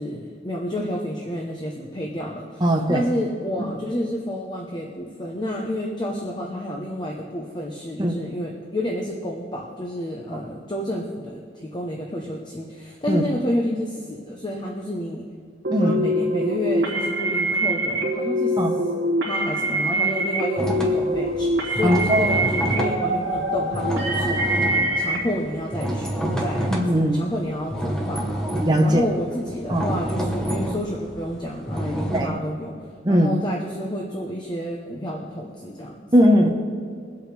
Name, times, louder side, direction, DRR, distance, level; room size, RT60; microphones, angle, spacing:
voice 1, 0.0-15.2 15.8-18.6 19.0-24.4 25.0-26.1 26.4-26.7 27.1-28.4 28.8-32.8 33.1-36.0, equal, 25° left, 0 dB, 0.9 m, -30 dB
voice 2, 2.6-3.1 8.0-8.1 13.1-13.2 15.7-16.0 18.6-18.7 21.8-22.4 24.2-24.3 26.7-27.2 28.6-29.0 29.7-29.9 32.1-32.4 33.0-33.3 36.1-36.5, equal, 20° right, 0 dB, 0.9 m, -19 dB
Scary Warehouse, 15.6-25.2, right 1 dB, 60° right, 2.3 m, -24 dB
sound 1, 20.6-27.2 27.7-32.2, right 1 dB, 5° left, 1.3 m, -27 dB
22.0 x 8.1 x 3.4 m, 2.2 s
head